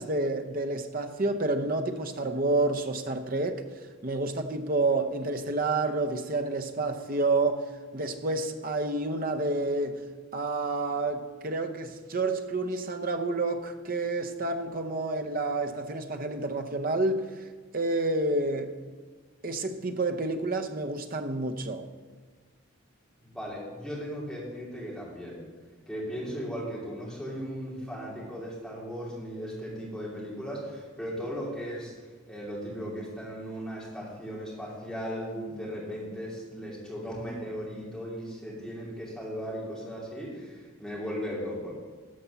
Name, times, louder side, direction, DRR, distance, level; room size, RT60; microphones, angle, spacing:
voice 1, 0.0-3.6 4.0-10.0 10.3-17.5 17.7-18.7 19.4-21.8, right 2 dB, 40° right, 6 dB, 0.7 m, -29 dB
voice 2, 23.2-25.4 25.9-41.7, equal, ahead, -6 dB, 2.9 m, -37 dB
13.0 x 5.2 x 7.0 m, 1.4 s
head